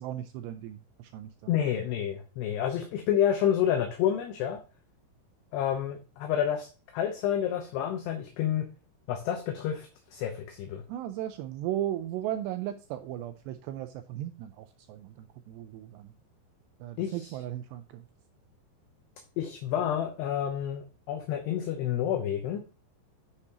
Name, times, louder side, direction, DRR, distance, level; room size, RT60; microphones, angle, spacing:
voice 1, 0.0-1.6 10.9-16.1 16.8-18.0, right 12 dB, 85° right, 9 dB, 2.5 m, -36 dB
voice 2, 1.5-4.6 5.5-6.7 6.9-8.6 9.1-10.8 17.0-17.3 19.4-22.6, left 10 dB, 75° left, 4 dB, 2.7 m, -29 dB
10.0 x 7.5 x 2.9 m, 0.34 s
omnidirectional pair, 5.5 m